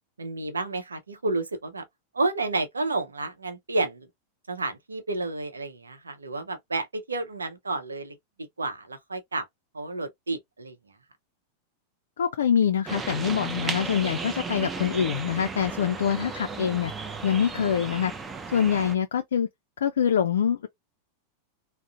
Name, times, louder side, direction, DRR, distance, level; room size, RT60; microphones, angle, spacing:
voice 1, 0.2-1.8 2.1-4.1 4.5-9.4 9.7-10.8 18.8-18.9, right 3 dB, 75° right, 0.7 m, -31 dB
voice 2, 12.2-16.9 17.2-18.1 18.5-19.5 19.8-20.7, left 8 dB, 65° left, 0.3 m, -25 dB
sound 1, 12.9-19.0, right 4 dB, 15° right, 0.5 m, -35 dB
3.6 x 2.0 x 2.4 m
figure-of-eight pair, 90°, 0 cm